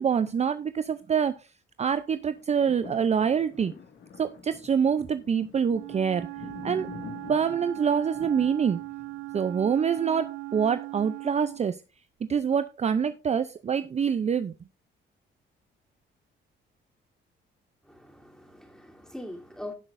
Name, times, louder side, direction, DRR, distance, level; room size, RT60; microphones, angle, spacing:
voice 1, 0.0-1.3 1.8-3.7 4.2-6.3 6.6-6.9 7.3-8.8 9.3-11.8 12.3-14.5, right 7 dB, 35° right, 0.5 m, -25 dB
sound 1, 2.2-10.5 11.0-11.1, left 6 dB, 70° left, 2.0 m, -47 dB
Wind instrument woodwind instrument, 5.7-11.7, right 20 dB, 90° right, 0.5 m, -39 dB
voice 2, 17.8-19.7, left 1 dB, 5° left, 3.1 m, -42 dB
18.0 x 6.0 x 2.6 m
cardioid pair, 90°, 20 cm